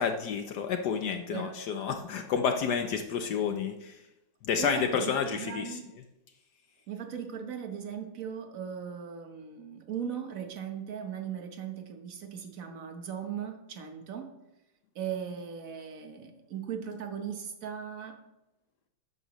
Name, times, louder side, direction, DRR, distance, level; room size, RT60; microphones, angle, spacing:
voice 1, 0.0-4.0 4.4-5.8, left 6 dB, 65° left, 6 dB, 1.1 m, -30 dB
voice 2, 4.6-5.9 6.9-14.3 14.9-18.2, right 7 dB, 50° right, 5 dB, 1.3 m, -38 dB
12.5 x 9.2 x 3.1 m, 0.94 s
omnidirectional pair, 2.2 m